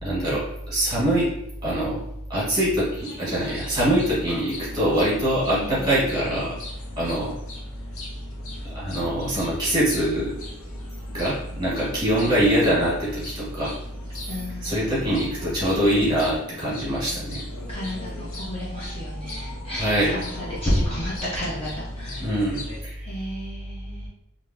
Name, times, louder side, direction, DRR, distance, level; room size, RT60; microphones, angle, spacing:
voice 1, 0.0-1.3 1.6-2.0 2.3-6.5 7.0-7.3 8.6-10.3 11.1-13.7 14.6-17.4 19.8-20.1 22.2-23.0, right 1 dB, 20° right, -7 dB, 1.3 m, -24 dB
sound 1, 3.0-22.8, left 2 dB, 75° left, 0.8 m, -40 dB
voice 2, 5.5-5.9 14.3-15.3 17.7-22.2 23.0-24.1, equal, 25° left, -6 dB, 0.5 m, -30 dB
3.4 x 2.4 x 2.6 m, 0.79 s
head